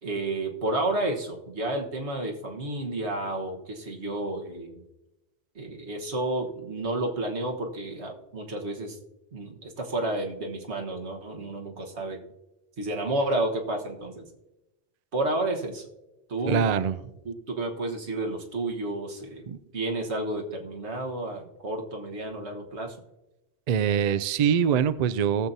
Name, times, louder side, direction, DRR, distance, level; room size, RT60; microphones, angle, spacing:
voice 1, 0.0-4.8 5.5-9.0 9.3-12.2 12.8-14.3 15.1-15.8 16.3-16.7 17.2-19.4 19.7-23.0, right 2 dB, 75° right, 2 dB, 1.7 m, -31 dB
voice 2, 16.5-17.0 19.5-19.6 23.7-25.5, right 8 dB, 55° right, 13 dB, 0.4 m, -23 dB
18.5 x 7.4 x 2.7 m, 0.95 s
omnidirectional pair, 1.1 m